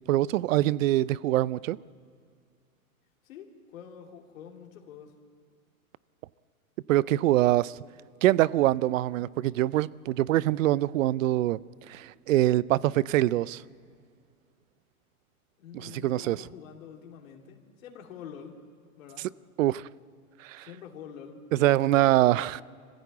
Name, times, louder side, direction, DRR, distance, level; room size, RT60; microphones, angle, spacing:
voice 1, 0.1-1.8 6.9-7.8 8.2-11.6 11.9-13.6 15.7-16.4 19.6-19.8 20.4-20.7 21.5-22.6, right 15 dB, 60° right, 0.6 m, -24 dB
voice 2, 3.2-5.2 15.6-18.6 19.0-19.3 20.6-22.6, left 7 dB, 65° left, 3.0 m, -46 dB
24.5 x 15.5 x 8.5 m
hypercardioid pair, 145°, 43 cm